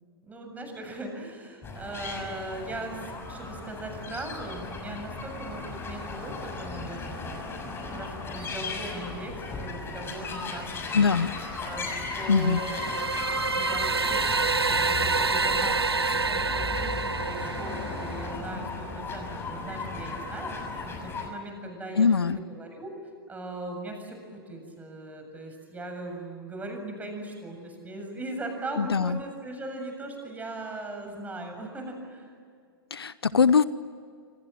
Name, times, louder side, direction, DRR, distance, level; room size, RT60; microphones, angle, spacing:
voice 1, 0.3-7.4 7.9-11.0 11.6-23.0 23.3-32.3, right 2 dB, 10° right, 4 dB, 7.3 m, -39 dB
sound 1, 1.6-21.3, left 3 dB, 20° left, 6.3 m, -36 dB
voice 2, 10.9-11.3 12.3-12.6 22.0-22.4 28.8-29.2 32.9-33.6, left 5 dB, 80° left, 17 dB, 0.9 m, -22 dB
sound 2, 12.4-18.4, right 4 dB, 90° right, 0.8 m, -27 dB
27.5 x 26.0 x 7.7 m, 2.2 s
figure-of-eight pair, 105°, 13 cm